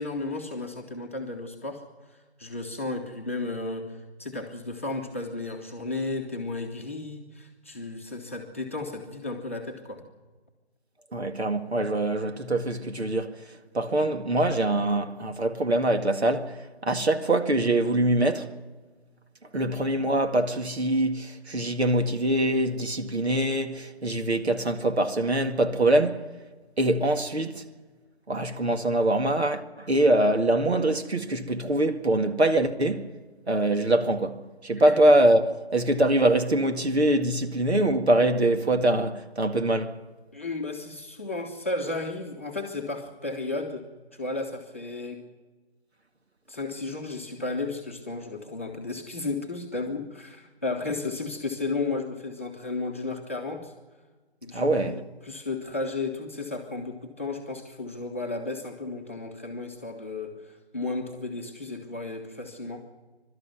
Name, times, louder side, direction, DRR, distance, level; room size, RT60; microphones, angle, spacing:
voice 1, 0.0-10.0 34.9-35.0 40.3-45.3 46.5-53.7 54.4-62.9, left 3 dB, 15° left, 1.0 m, -34 dB
voice 2, 11.1-13.4 13.7-18.5 19.5-26.3 26.8-27.6 28.3-33.1 33.5-40.0 54.5-55.0, right 1 dB, 80° right, 2.1 m, -24 dB
23.0 x 12.5 x 9.4 m
figure-of-eight pair, 175°, 32 cm